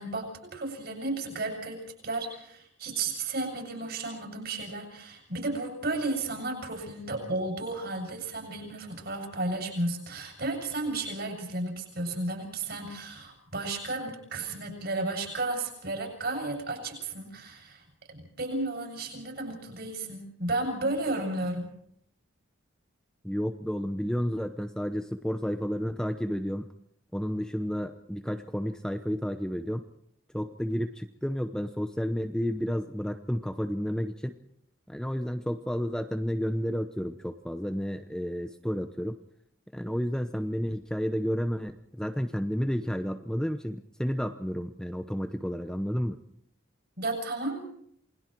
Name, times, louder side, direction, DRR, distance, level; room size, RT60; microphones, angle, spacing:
voice 1, 0.0-21.7 47.0-47.6, right 2 dB, 50° right, 3 dB, 7.4 m, -33 dB
voice 2, 23.2-26.7 27.1-29.9 30.3-34.4 34.9-39.2 39.7-46.2, equal, 5° left, 7 dB, 0.8 m, -31 dB
28.0 x 21.0 x 4.6 m, 0.68 s
head